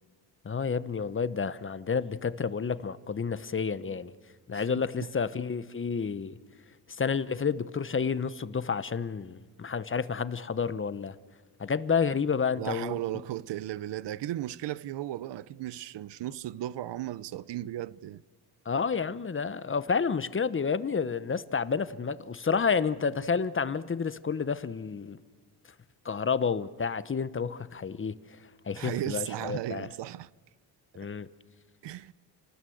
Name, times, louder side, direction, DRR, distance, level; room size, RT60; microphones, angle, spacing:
voice 1, 0.4-4.1 4.5-6.4 7.0-11.1 11.6-13.0 18.6-25.2 26.0-28.2 28.6-29.9 30.9-31.3, left 5 dB, 30° left, 1.0 m, -30 dB
voice 2, 4.5-5.1 12.5-18.2 28.8-30.3 30.9-31.1 31.8-32.1, right 13 dB, 80° right, 0.8 m, -36 dB
29.0 x 19.5 x 7.9 m
cardioid pair, 115°, 42 cm